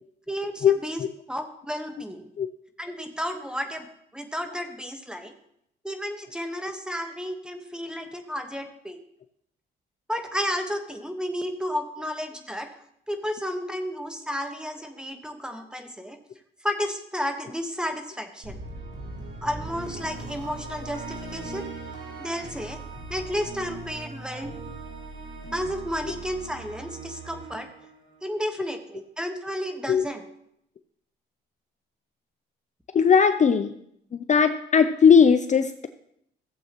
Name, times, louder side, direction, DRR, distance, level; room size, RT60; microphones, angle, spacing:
voice 1, 0.3-1.0 1.3-2.3 2.8-3.9 4.1-5.4 5.8-9.0 10.1-12.7 13.1-16.2 16.6-18.6 19.4-21.7 22.2-22.8 23.1-24.5 25.5-27.7 28.2-30.3, equal, 5° right, 6 dB, 1.3 m, -32 dB
sound 1, 18.4-28.6, right 2 dB, 65° right, 3.0 m, -39 dB
voice 2, 32.9-33.7 34.1-35.9, left 6 dB, 35° left, 9 dB, 0.5 m, -18 dB
15.5 x 7.7 x 3.0 m, 0.73 s
cardioid pair, 90°, 20 cm